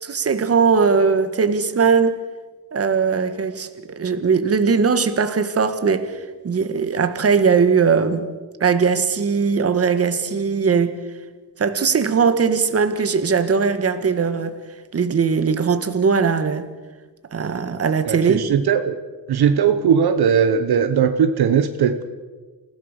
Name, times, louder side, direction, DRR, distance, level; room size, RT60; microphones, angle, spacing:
voice 1, 0.0-2.2 2.7-6.1 6.4-8.3 8.6-11.0 11.6-14.6 14.9-16.7 17.3-18.4, right 5 dB, 35° right, 10 dB, 1.7 m, -19 dB
voice 2, 18.0-19.0 19.3-22.0, right 7 dB, 60° right, 9 dB, 1.3 m, -18 dB
28.0 x 16.5 x 6.8 m, 1.3 s
cardioid pair, 140°, 42 cm